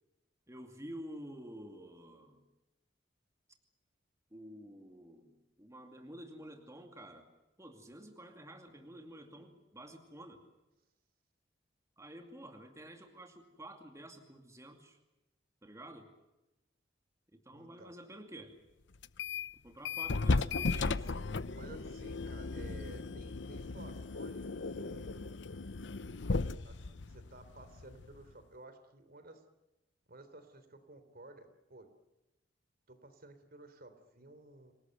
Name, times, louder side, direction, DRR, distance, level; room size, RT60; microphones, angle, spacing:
voice 1, 0.5-2.4 4.3-7.3 7.6-10.4 12.0-15.0 15.6-16.1 17.3-18.5 19.6-21.2, right 1 dB, 15° right, 4 dB, 2.5 m, -50 dB
voice 2, 17.5-18.0 21.5-25.4 26.6-29.4 30.1-31.9 32.9-34.7, right 2 dB, 55° right, 10 dB, 3.5 m, -54 dB
sound 1, 19.0-19.5 19.8-28.3, left 3 dB, 75° left, 0.8 m, -36 dB
27.0 x 18.5 x 9.2 m, 0.98 s
head